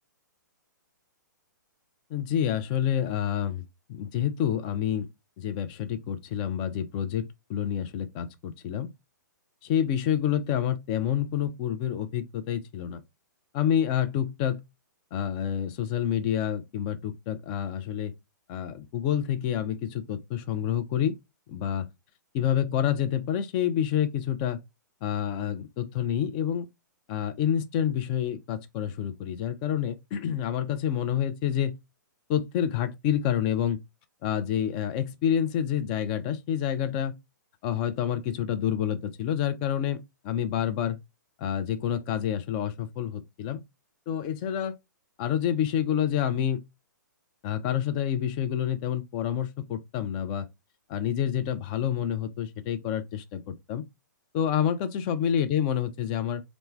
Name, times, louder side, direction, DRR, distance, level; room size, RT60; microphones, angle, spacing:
voice 1, 2.1-3.6 3.9-5.1 5.4-8.9 9.6-13.0 13.5-14.6 15.1-18.1 18.5-21.1 21.5-21.9 22.3-24.6 25.0-26.7 27.1-31.7 32.3-33.8 34.2-37.2 37.6-41.0 41.4-43.6 44.1-44.7 45.2-46.6 47.4-50.5 50.9-53.9 54.3-56.4, left 9 dB, 25° left, 0.4 m, -28 dB
3.2 x 2.0 x 3.1 m
figure-of-eight pair, 120°, 10 cm